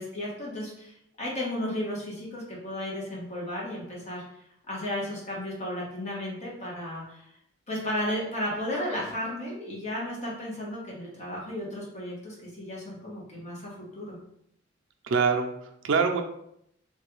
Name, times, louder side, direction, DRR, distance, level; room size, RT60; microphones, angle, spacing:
voice 1, 0.0-4.2 4.7-7.2 7.7-14.2, left 1 dB, 35° left, -5 dB, 1.0 m, -34 dB
voice 2, 15.0-16.2, right 5 dB, 75° right, 5 dB, 0.4 m, -25 dB
3.1 x 2.2 x 3.0 m, 0.75 s
head